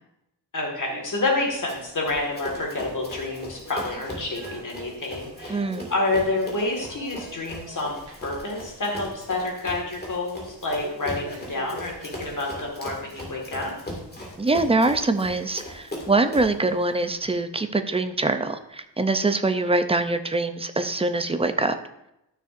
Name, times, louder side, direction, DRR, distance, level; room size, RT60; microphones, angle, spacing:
voice 1, 0.5-13.7, left 2 dB, 45° left, 0 dB, 1.8 m, -28 dB
sound 1, 0.8-8.4 8.7-9.0 9.4-9.5 10.8-13.5 13.9-14.1 14.8-14.9 15.7-15.8 16.6-16.7, right 2 dB, 75° right, 1.7 m, -45 dB
Run, 1.7-16.6, left 1 dB, 20° left, 2.0 m, -39 dB
voice 2, 5.5-5.9 14.4-21.8, right 2 dB, 15° right, 9 dB, 0.4 m, -24 dB
12.5 x 6.6 x 2.5 m, 0.85 s
wide cardioid pair, 145°, 44 cm